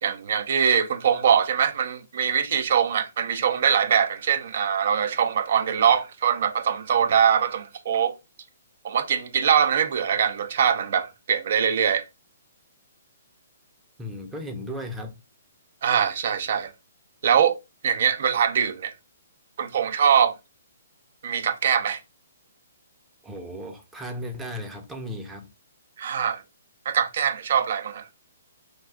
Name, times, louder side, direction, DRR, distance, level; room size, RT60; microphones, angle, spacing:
voice 1, 0.0-8.1 8.8-12.0 15.8-16.7 17.2-17.5 17.8-18.9 19.6-20.3 21.2-22.0 26.0-26.4 26.9-28.0, right 8 dB, 55° right, 0.5 m, -22 dB
voice 2, 14.0-15.2 23.2-25.5, equal, 10° right, 0.5 m, -35 dB
2.5 x 2.3 x 3.4 m
hypercardioid pair, 135°, 0 cm